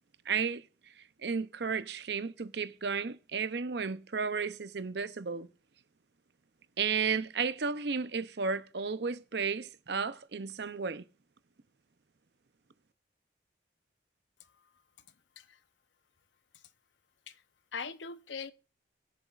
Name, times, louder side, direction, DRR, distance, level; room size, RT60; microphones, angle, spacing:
voice 1, 0.3-0.6 1.2-5.5 6.8-11.0, right 5 dB, 65° right, 0.7 m, -33 dB
voice 2, 14.4-14.7 15.4-15.6 16.5-16.6 17.3-17.4 17.7-18.5, left 5 dB, 85° left, 0.8 m, -42 dB
20.5 x 7.0 x 2.4 m
head